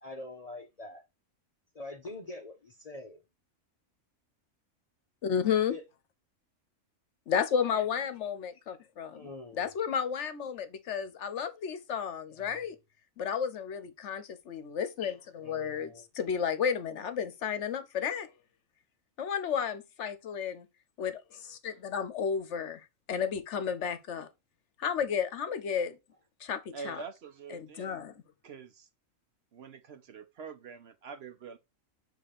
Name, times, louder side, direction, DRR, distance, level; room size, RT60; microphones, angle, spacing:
voice 1, 0.0-1.0 1.7-3.2 5.7-5.8 9.1-9.7 12.3-12.7 15.4-16.1, left 2 dB, 40° left, 0.6 m, -45 dB
voice 2, 5.2-5.8 7.3-12.8 13.2-18.3 19.2-20.7 21.0-24.3 24.8-26.0 26.4-27.0 27.5-28.1, left 7 dB, 65° left, 1.0 m, -32 dB
voice 3, 26.7-28.1 28.4-28.9 29.5-31.6, right 5 dB, 60° right, 0.9 m, -45 dB
7.6 x 3.0 x 4.2 m
omnidirectional pair, 1.4 m